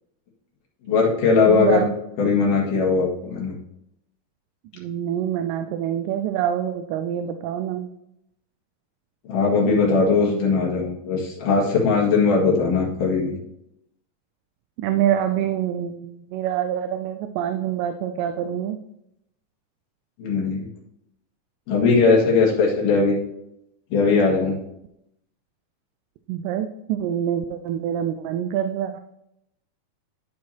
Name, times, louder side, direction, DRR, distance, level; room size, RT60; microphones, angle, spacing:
voice 1, 0.8-1.8 2.2-3.6 9.2-13.4 20.2-20.7 21.7-23.2 23.9-24.6, left 4 dB, 70° left, -3 dB, 3.3 m, -19 dB
voice 2, 1.5-1.9 4.8-7.9 14.8-18.8 26.3-29.0, right 10 dB, 90° right, 7 dB, 2.2 m, -25 dB
12.5 x 4.7 x 2.8 m, 0.79 s
omnidirectional pair, 3.8 m